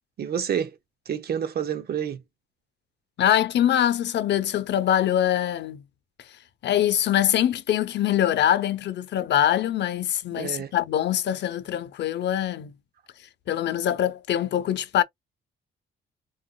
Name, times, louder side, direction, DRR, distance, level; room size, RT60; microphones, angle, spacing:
voice 1, 0.2-0.7 1.1-2.2 10.3-10.7, right 8 dB, 50° right, 0.7 m, -28 dB
voice 2, 3.2-5.8 6.6-12.7 13.5-15.0, left 11 dB, 60° left, 0.6 m, -23 dB
3.8 x 2.4 x 2.2 m
cardioid pair, 90°, 20 cm